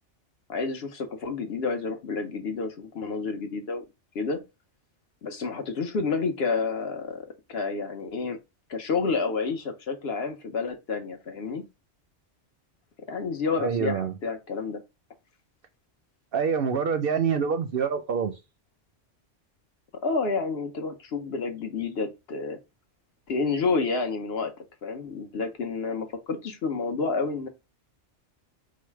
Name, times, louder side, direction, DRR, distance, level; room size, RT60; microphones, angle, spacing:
voice 1, 0.5-3.8 4.1-4.4 5.2-8.4 8.7-11.6 13.1-14.8 20.0-22.6 23.3-27.5, left 4 dB, 60° left, 1.0 m, -29 dB
voice 2, 13.6-14.1 16.3-18.3, right 6 dB, 60° right, 0.7 m, -26 dB
4.7 x 2.1 x 4.5 m
omnidirectional pair, 1.2 m